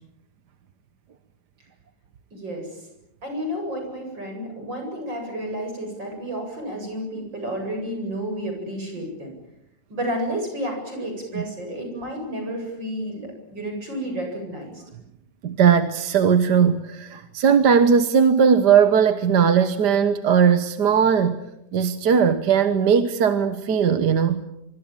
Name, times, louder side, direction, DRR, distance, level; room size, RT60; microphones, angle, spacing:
voice 1, 2.3-2.7 3.2-9.3 9.9-14.8, equal, 85° right, 3 dB, 8.9 m, -31 dB
voice 2, 15.4-21.4 21.7-24.4, right 7 dB, 65° right, 10 dB, 1.7 m, -18 dB
25.0 x 24.5 x 8.9 m, 0.84 s
omnidirectional pair, 2.0 m